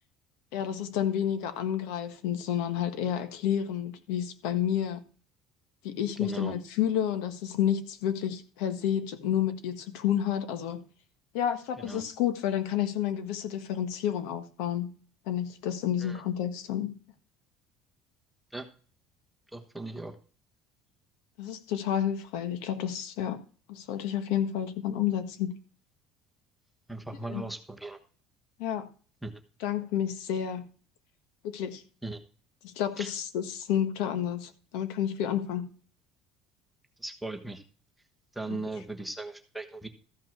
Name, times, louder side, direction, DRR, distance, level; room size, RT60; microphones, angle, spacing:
voice 1, 0.5-5.0 5.8-10.8 11.3-14.9 15.3-16.9 21.4-23.4 23.7-25.6 27.3-27.4 28.6-28.9 29.6-30.7 31.4-31.8 32.6-35.7 38.5-38.6, left 10 dB, 85° left, 1.4 m, -30 dB
voice 2, 6.2-6.5 11.8-12.0 16.0-16.2 18.5-18.7 19.5-20.1 26.9-28.0 29.2-29.3 32.0-32.2 33.0-33.1 37.0-37.6 38.3-39.9, right 2 dB, ahead, 1.2 m, -38 dB
14.0 x 5.6 x 6.0 m
cardioid pair, 165°, 0 cm